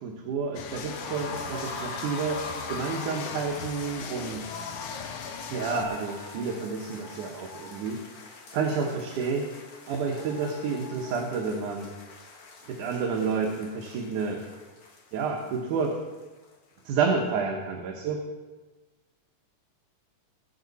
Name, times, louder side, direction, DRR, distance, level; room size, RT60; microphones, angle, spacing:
voice 1, 0.0-2.4 2.7-4.6 5.5-8.0 8.5-9.5 9.9-11.9 12.7-14.4 15.1-16.0 16.9-18.2, right 5 dB, 70° right, 0 dB, 2.6 m, -30 dB
sound 1, 0.5-5.8, left 6 dB, 85° left, 1.3 m, -39 dB
sound 2, 0.7-16.5 16.8-16.9 17.2-17.3, left 3 dB, 50° left, 2.1 m, -43 dB
20.5 x 7.5 x 4.1 m, 1.3 s
omnidirectional pair, 3.7 m